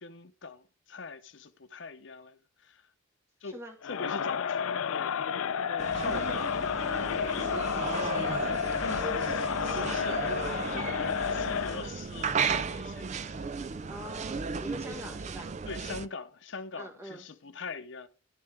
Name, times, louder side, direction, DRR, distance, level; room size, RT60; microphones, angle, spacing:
voice 1, 0.0-2.9 3.4-3.6 3.8-6.7 7.3-13.6 15.7-18.1, left 4 dB, 60° left, 0.8 m, -43 dB
voice 2, 3.4-3.8 13.9-15.5 16.7-17.3, left 1 dB, 15° right, 1.4 m, -44 dB
Crowd, 3.8-11.9, left 7 dB, 85° left, 0.5 m, -31 dB
sound 1, 5.8-16.1, right 5 dB, 35° right, 0.3 m, -35 dB
12.0 x 6.7 x 3.4 m
head